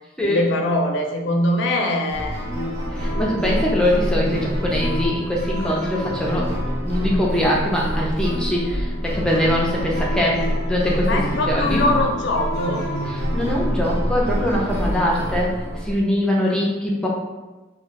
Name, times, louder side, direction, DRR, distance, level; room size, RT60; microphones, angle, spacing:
voice 1, 0.2-2.4 11.0-12.9 16.5-16.6, left 1 dB, 65° left, 2 dB, 0.5 m, -22 dB
sound 1, 2.1-16.0, equal, 55° right, 0.8 m, -26 dB
voice 2, 2.9-6.5 6.8-11.1 11.5-11.8 13.1-15.6 15.9-17.1, left 1 dB, 5° left, -3 dB, 0.5 m, -22 dB
2.3 x 2.2 x 3.3 m, 1.2 s
head